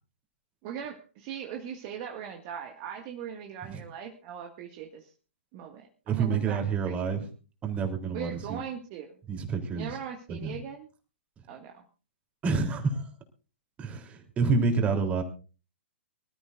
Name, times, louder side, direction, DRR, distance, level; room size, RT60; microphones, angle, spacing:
voice 1, 0.6-5.1 5.5-7.1 8.1-9.2 9.7-10.9 11.5-11.8, right 8 dB, 35° right, 3 dB, 2.0 m, -40 dB
voice 2, 6.1-7.2 7.6-8.6 9.3-10.0 10.3-10.6 12.4-13.1 13.8-15.2, right 4 dB, 20° right, 4 dB, 3.5 m, -28 dB
25.0 x 13.5 x 2.6 m, 0.35 s
figure-of-eight pair, 120°, 7 cm